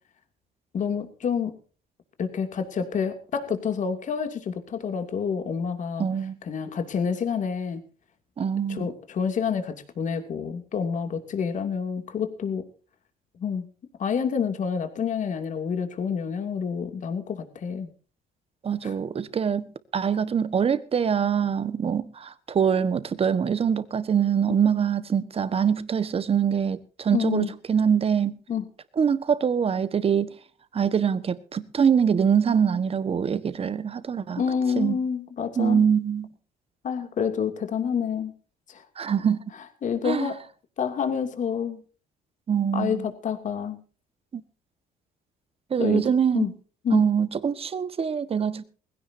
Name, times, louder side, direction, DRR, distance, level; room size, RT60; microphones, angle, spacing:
voice 1, 0.7-1.6 2.2-6.1 6.5-7.8 8.7-12.6 13.4-13.7 14.0-17.9 18.8-18.9 27.1-27.5 28.5-28.6 34.4-35.8 36.8-38.3 38.7-38.8 39.8-40.4 40.8-41.8 42.7-43.8 45.8-46.0 46.3-46.5 46.8-47.0, left 7 dB, 45° left, 2.6 m, -28 dB
voice 2, 6.0-6.4 8.4-8.9 18.6-28.4 29.0-30.3 30.7-34.4 34.8-35.0 35.6-36.3 39.0-39.4 40.0-40.3 42.5-43.1 44.3-44.4 45.7-46.5 46.9-48.6, right 7 dB, 35° right, 1.4 m, -24 dB
20.5 x 16.5 x 2.7 m
cardioid pair, 110°, 17 cm